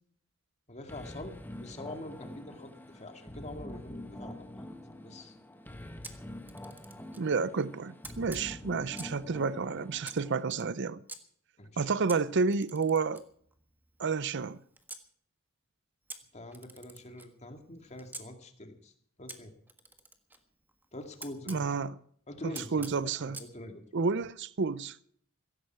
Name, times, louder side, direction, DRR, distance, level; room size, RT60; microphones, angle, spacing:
voice 1, 0.7-4.5 5.0-5.4 11.6-11.9 16.3-18.9 19.2-19.5 20.9-21.8 22.3-22.9 23.2-23.8, left 1 dB, 35° left, 2.2 m, -45 dB
sound 1, 0.9-10.4, left 1 dB, 10° left, 1.4 m, -46 dB
Camera, 6.0-7.3 8.0-9.3 10.0-11.2 12.1-15.1 16.1-18.3 19.3-21.6 22.5-23.5, right 2 dB, 10° right, 1.5 m, -49 dB
voice 2, 7.2-11.0 11.8-13.2 14.0-14.6 21.5-21.9 22.7-23.4 23.9-25.0, right 4 dB, 60° right, 0.6 m, -30 dB
16.5 x 16.0 x 4.7 m
head